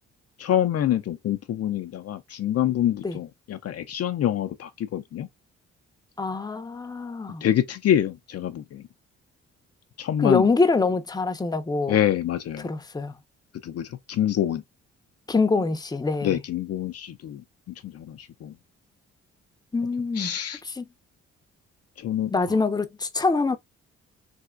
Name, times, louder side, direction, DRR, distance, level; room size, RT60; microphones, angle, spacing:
voice 1, 0.4-5.3 7.4-8.9 10.0-10.5 11.9-12.7 13.6-14.6 16.2-18.5 20.2-20.6 22.0-22.3, left 11 dB, 55° left, 0.5 m, -26 dB
voice 2, 6.2-7.4 10.2-12.0 12.6-13.1 15.3-16.4 19.7-20.3 20.6-20.8 22.3-23.6, left 3 dB, 15° left, 0.6 m, -24 dB
3.4 x 2.7 x 2.4 m
supercardioid pair, 60°, 30 cm